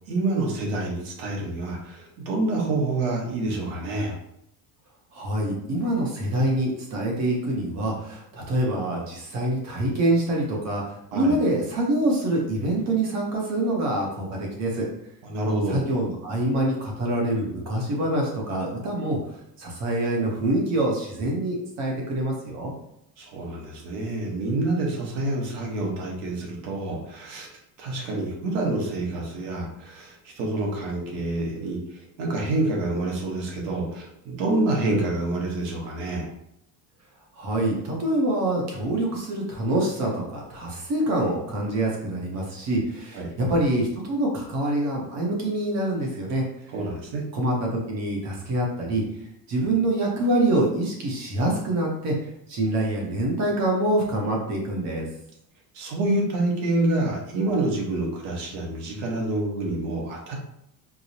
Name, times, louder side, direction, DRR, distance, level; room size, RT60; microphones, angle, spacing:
voice 1, 0.1-4.2 11.1-11.4 15.2-15.8 23.2-27.5 27.8-36.3 43.1-43.3 46.7-47.2 55.7-60.4, right 2 dB, 75° right, -1 dB, 1.2 m, -27 dB
voice 2, 5.1-14.9 15.7-19.2 19.6-22.7 37.4-46.7 47.3-49.0 49.5-55.1, right 1 dB, 35° right, -1 dB, 0.8 m, -25 dB
4.7 x 2.0 x 2.7 m, 0.76 s
cardioid pair, 170°, 44 cm